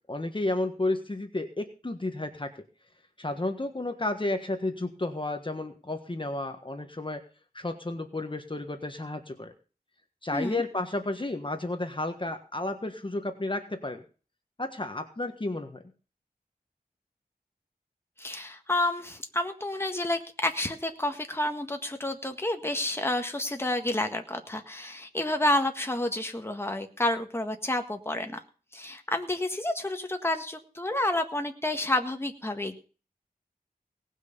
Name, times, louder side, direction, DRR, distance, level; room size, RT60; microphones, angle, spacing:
voice 1, 0.1-2.5 3.2-7.2 7.5-9.5 10.2-14.0 14.6-15.8, left 2 dB, 30° left, 6 dB, 1.5 m, -32 dB
voice 2, 10.3-10.6 18.2-28.4 28.7-32.8, left 1 dB, 15° left, 5 dB, 1.7 m, -30 dB
18.5 x 6.4 x 6.8 m, 0.37 s
wide cardioid pair, 80°, 16 cm